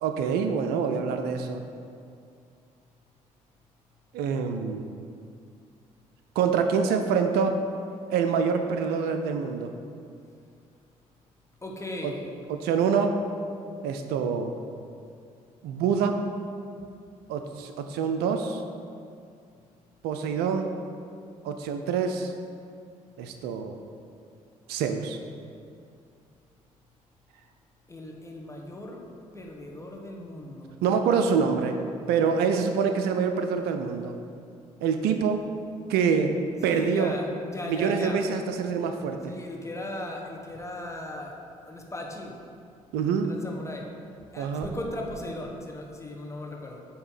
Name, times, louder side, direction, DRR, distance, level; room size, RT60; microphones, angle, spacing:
voice 1, 0.0-1.6 4.1-4.9 6.4-7.6 8.1-9.7 12.0-12.1 12.5-13.2 13.8-14.5 15.6-16.2 17.3-18.6 20.0-20.7 21.4-22.3 23.2-23.8 24.7-25.2 30.8-31.8 32.1-34.2 34.8-35.5 35.9-36.4 36.6-37.2 37.7-39.3 42.9-43.3 44.4-44.7, right 6 dB, 65° right, 6 dB, 0.5 m, -26 dB
voice 2, 11.6-12.3 27.9-29.0 29.3-30.8 36.6-38.2 39.3-42.4 43.2-43.9 44.3-46.8, left 1 dB, 15° left, 0 dB, 1.1 m, -37 dB
7.9 x 2.9 x 5.6 m, 2.4 s
hypercardioid pair, 45°, 18 cm